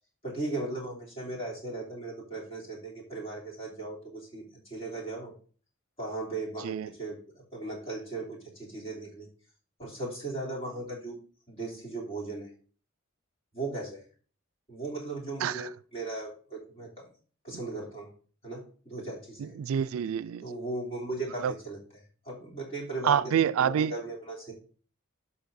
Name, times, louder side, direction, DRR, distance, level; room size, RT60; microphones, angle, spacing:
voice 1, 0.2-4.4 4.7-5.3 6.0-9.3 9.8-11.1 11.5-12.5 13.5-14.0 14.7-17.1 17.4-18.1 18.4-19.5 20.4-21.8 22.2-23.2 23.6-24.5, right 2 dB, 30° left, 3.0 m, -37 dB
voice 2, 19.4-20.5 21.4-21.5 23.0-23.9, right 8 dB, 85° right, 0.3 m, -27 dB
13.0 x 5.7 x 2.6 m
head